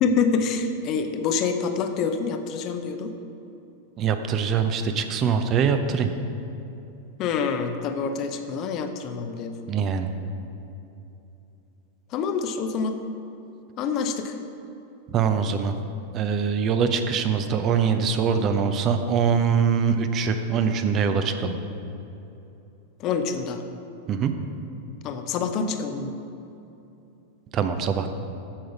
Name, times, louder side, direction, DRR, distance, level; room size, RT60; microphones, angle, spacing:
voice 1, 0.0-3.1 7.2-9.6 12.1-13.0 13.8-14.3 23.0-23.6 25.0-26.1, left 5 dB, 35° left, 7 dB, 0.7 m, -26 dB
voice 2, 4.0-6.1 9.7-10.1 15.1-15.7 16.1-21.6 24.1-24.3 27.5-28.1, right 6 dB, 35° right, 8 dB, 0.6 m, -23 dB
8.7 x 6.4 x 5.9 m, 2.8 s
figure-of-eight pair, 90°, 0 cm